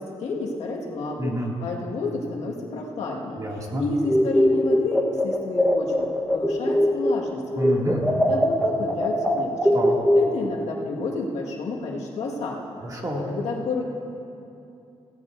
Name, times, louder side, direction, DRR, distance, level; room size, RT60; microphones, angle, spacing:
voice 1, 0.0-3.4 3.8-7.7 8.3-9.7 10.1-12.6 13.2-13.8, left 3 dB, 85° left, -2 dB, 1.8 m, -30 dB
voice 2, 1.2-1.5 3.4-3.9 7.5-8.1 9.7-9.9 12.8-13.2, right 1 dB, 30° right, -2 dB, 2.4 m, -28 dB
sound 1, 4.0-7.3 7.6-10.6, equal, ahead, 1.2 m, -21 dB
17.5 x 13.5 x 2.7 m, 2.7 s
cardioid pair, 90°, 11 cm